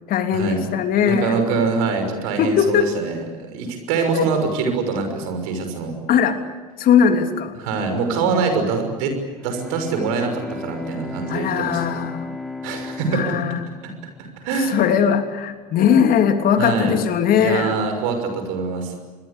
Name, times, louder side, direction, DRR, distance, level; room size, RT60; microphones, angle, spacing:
voice 1, 0.1-1.4 2.4-2.9 4.0-4.3 6.1-6.4 6.8-7.6 8.2-8.4 11.3-12.4 13.1-13.6 14.6-17.8, left 7 dB, 50° left, 7 dB, 3.2 m, -19 dB
voice 2, 1.1-5.9 7.6-9.1 9.4-11.8 12.6-13.2 13.8-13.9 14.4-14.8 16.6-17.0 17.3-18.9, right 5 dB, 65° right, 6 dB, 6.1 m, -24 dB
Bowed string instrument, 9.3-15.4, left 3 dB, 5° left, 3.0 m, -35 dB
26.5 x 22.0 x 8.5 m, 1.4 s
hypercardioid pair, 70°, 20 cm